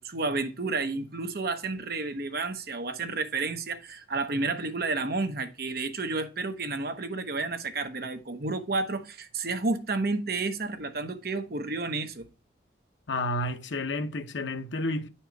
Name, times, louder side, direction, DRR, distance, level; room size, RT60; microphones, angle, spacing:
voice 1, 0.0-12.3, right 3 dB, 55° right, 0.9 m, -31 dB
voice 2, 13.1-15.1, left 1 dB, 90° left, 0.8 m, -31 dB
9.6 x 4.4 x 4.5 m
head